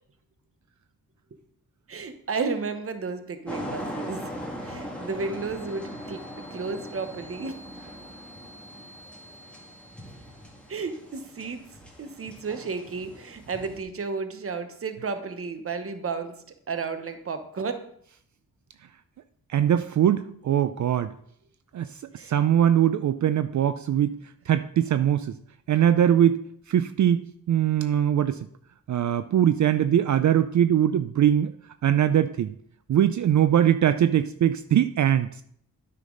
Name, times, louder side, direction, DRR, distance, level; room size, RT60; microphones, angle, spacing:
voice 1, 1.9-4.3 4.6-7.6 10.7-11.6 12.0-16.4 16.7-17.8 22.1-22.4, right 4 dB, 40° right, 9 dB, 1.0 m, -33 dB
sound 1, 3.5-13.8, equal, 5° left, 2.1 m, -40 dB
sound 2, 5.4-11.0, right 1 dB, 50° left, 2.6 m, -52 dB
voice 2, 19.5-21.1 21.7-21.9 22.1-24.2 24.5-25.3 25.7-26.4 26.7-28.5 28.9-31.5 31.8-32.5 32.9-35.3, right 10 dB, 55° right, 12 dB, 0.4 m, -21 dB
9.3 x 5.8 x 3.8 m, 0.66 s
cardioid pair, 75°, 36 cm